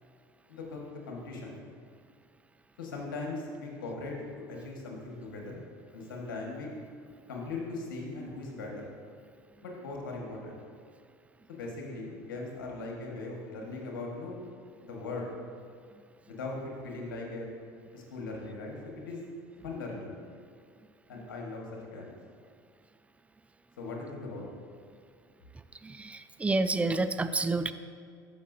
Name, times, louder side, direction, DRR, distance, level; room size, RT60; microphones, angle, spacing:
voice 1, 0.5-1.6 2.8-4.2 4.5-5.7 5.9-6.7 7.3-8.9 9.6-10.6 11.5-14.4 14.8-15.3 16.3-17.5 17.9-19.2 19.6-20.1 21.1-22.2 23.8-24.5, left 3 dB, 85° left, -1 dB, 1.6 m, -39 dB
voice 2, 25.8-27.7, right 3 dB, 10° right, 11 dB, 0.4 m, -29 dB
13.0 x 5.7 x 2.7 m, 2.3 s
hypercardioid pair, 80°, 11 cm